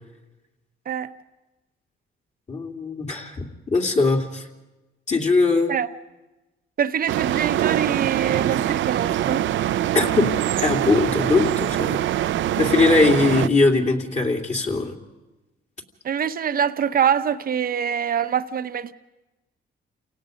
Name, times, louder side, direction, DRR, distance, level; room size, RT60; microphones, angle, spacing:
voice 1, 2.5-4.4 5.1-5.7 9.9-12.0 12.6-14.9, left 3 dB, 35° left, 3.0 m, -21 dB
voice 2, 6.8-9.5 16.0-18.9, right 8 dB, 45° right, 0.9 m, -24 dB
sound 1, 7.1-13.5, right 12 dB, 75° right, 0.6 m, -23 dB
29.5 x 18.0 x 5.2 m
cardioid pair, 90°, 20 cm